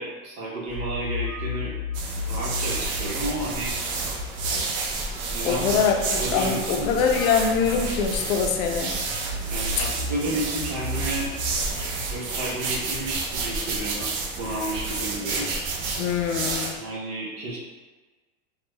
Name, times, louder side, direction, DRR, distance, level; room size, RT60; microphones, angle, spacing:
voice 1, 0.0-1.7 2.2-3.7 5.2-6.9 9.4-11.3 12.1-15.5 16.8-17.6, right 1 dB, 50° right, -4 dB, 1.2 m, -32 dB
sound 1, 0.7-12.2, left 1 dB, 5° right, 1.2 m, -34 dB
sound 2, 1.9-16.7, right 4 dB, 30° right, 0.4 m, -30 dB
voice 2, 5.4-8.9 16.0-16.7, left 6 dB, 70° left, 2 dB, 0.6 m, -23 dB
3.4 x 2.3 x 3.2 m, 1.3 s
supercardioid pair, 130°, 43 cm